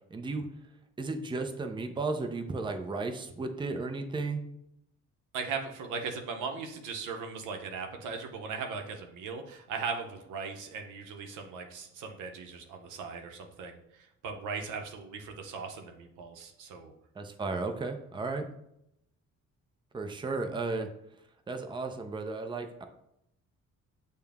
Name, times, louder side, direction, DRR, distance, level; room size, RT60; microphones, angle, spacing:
voice 1, 0.1-0.5 1.0-4.4 17.2-18.4 19.9-20.9 21.5-22.8, right 3 dB, 15° right, 5 dB, 0.5 m, -34 dB
voice 2, 5.3-16.9, right 5 dB, 90° right, 4 dB, 0.8 m, -38 dB
6.8 x 2.3 x 3.4 m, 0.80 s
cardioid pair, 90°, 30 cm